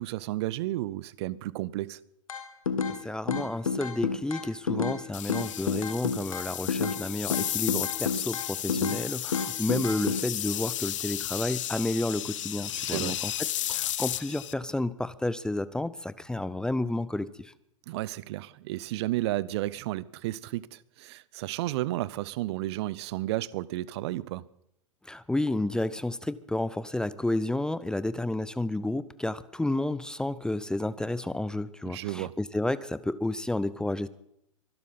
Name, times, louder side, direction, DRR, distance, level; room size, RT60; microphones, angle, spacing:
voice 1, 0.0-2.0 8.7-8.8 12.8-13.2 17.9-24.4 31.8-32.3, right 16 dB, 50° right, 0.7 m, -32 dB
sound 1, 2.3-3.0 3.3-5.0 5.3-7.0 7.3-9.0 9.3-10.2, left 5 dB, 80° left, 1.6 m, -29 dB
voice 2, 3.0-17.5 25.1-34.1, left 2 dB, 5° left, 0.5 m, -31 dB
sound 2, 5.1-14.5, left 12 dB, 65° left, 0.8 m, -33 dB
24.0 x 12.0 x 4.2 m
figure-of-eight pair, 100°, 17 cm